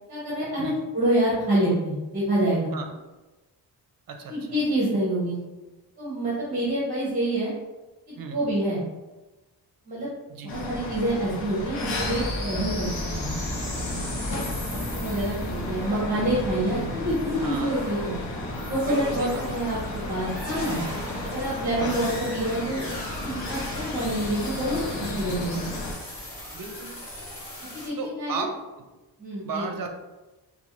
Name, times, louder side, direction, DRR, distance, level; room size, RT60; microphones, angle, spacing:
voice 1, 0.1-2.7 4.3-5.3 6.0-7.5 8.1-8.8 9.9-10.1 10.4-13.3 14.3-14.4 14.7-18.1 18.7-20.8 21.2-22.8 23.2-25.7 27.7-28.4 29.2-29.7, right 1 dB, 20° right, -7 dB, 0.8 m, -27 dB
voice 2, 4.1-4.6 8.2-8.4 10.3-10.5 17.3-17.8 18.8-19.4 21.8-22.0 26.5-27.0 28.0-28.9 29.4-29.9, right 4 dB, 55° right, 4 dB, 0.5 m, -35 dB
sound 1, 10.5-25.9, left 2 dB, 90° left, 0.7 m, -34 dB
sound 2, 11.9-27.9, equal, 30° left, 1.3 m, -36 dB
4.2 x 2.2 x 2.9 m, 1.1 s
wide cardioid pair, 170°, 42 cm